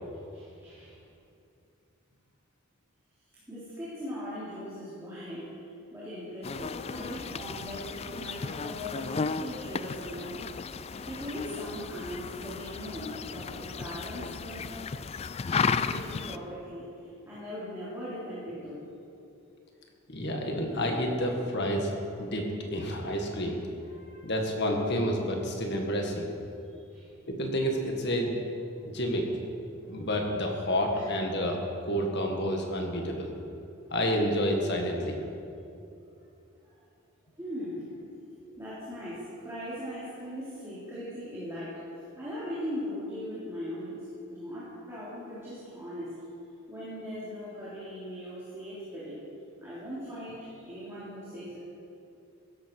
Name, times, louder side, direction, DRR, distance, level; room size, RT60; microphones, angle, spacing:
voice 1, 0.3-1.0 3.5-5.5 5.9-10.4 11.0-14.7 15.5-16.8 17.2-18.8 23.8-24.3 26.7-27.1 29.8-30.0 30.9-31.0 36.6-36.8 37.4-37.9 38.5-46.1 46.7-49.2 49.6-51.6, equal, 15° right, -10 dB, 3.3 m, -39 dB
sound 1, 6.4-16.4, left 5 dB, 30° left, 0.3 m, -34 dB
voice 2, 20.1-21.9 22.2-23.6 24.2-26.3 27.3-28.3 28.8-29.3 29.9-33.3 33.9-35.2, equal, 55° left, 1 dB, 2.0 m, -29 dB
16.0 x 13.0 x 4.8 m, 2.6 s
head